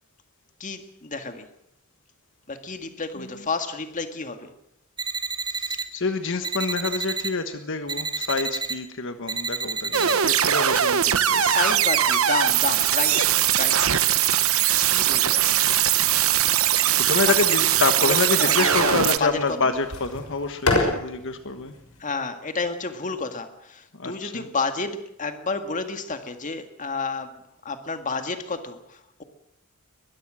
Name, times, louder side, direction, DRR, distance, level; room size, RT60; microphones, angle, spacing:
voice 1, 0.6-1.5 2.5-4.5 11.4-13.9 14.9-15.6 17.2-17.7 18.0-19.7 22.0-29.2, left 4 dB, 35° left, 7 dB, 1.8 m, -31 dB
voice 2, 3.1-3.5 5.5-11.6 14.8-15.1 16.2-16.3 17.0-21.7 24.0-24.5, left 3 dB, 60° left, 8 dB, 1.4 m, -27 dB
sound 1, 5.0-5.8 6.4-7.3 7.9-8.7 9.3-10.1, right 4 dB, 20° right, 2.2 m, -30 dB
sound 2, 9.9-19.2, right 10 dB, 70° right, 1.0 m, -21 dB
sound 3, 15.7-22.1, left 2 dB, 80° left, 5.9 m, -32 dB
22.0 x 21.0 x 6.3 m, 0.80 s
head